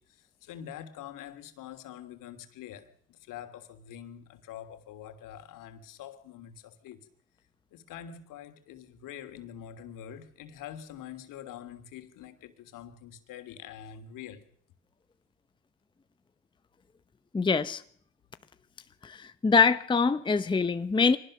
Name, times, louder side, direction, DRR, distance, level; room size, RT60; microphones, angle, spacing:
voice 1, 0.0-7.1 7.7-14.4, left 9 dB, 60° left, 3.0 m, -45 dB
voice 2, 17.3-17.8 19.0-21.2, left 5 dB, 15° left, 0.8 m, -24 dB
24.5 x 19.5 x 6.5 m
hypercardioid pair, 85°, 36 cm